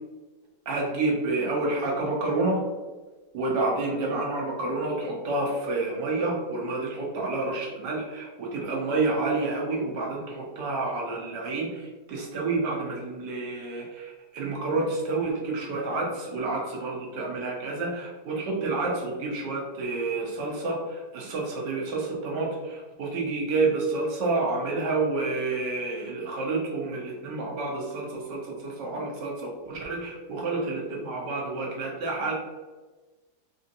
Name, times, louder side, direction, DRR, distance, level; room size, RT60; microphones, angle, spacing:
voice 1, 0.7-2.6 3.3-32.3, right 3 dB, 90° right, -2 dB, 1.5 m, -29 dB
4.2 x 2.6 x 2.6 m, 1.3 s
omnidirectional pair, 1.8 m